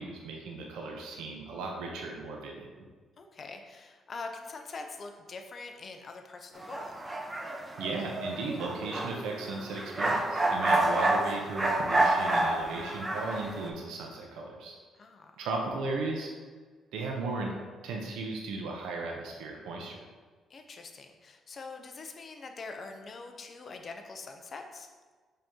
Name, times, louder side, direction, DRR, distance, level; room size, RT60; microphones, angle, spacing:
voice 1, 0.0-2.7 7.8-14.7 15.4-16.3 16.9-17.5 17.8-20.0, right 3 dB, 90° right, 0 dB, 0.6 m, -36 dB
voice 2, 3.2-6.9 10.5-10.6 15.0-15.3 20.5-24.9, left 4 dB, 45° left, 4 dB, 0.5 m, -44 dB
sound 1, 6.6-13.7, right 2 dB, 20° right, 0.6 m, -29 dB
5.2 x 2.8 x 3.6 m, 1.4 s
cardioid pair, 90°, 0 cm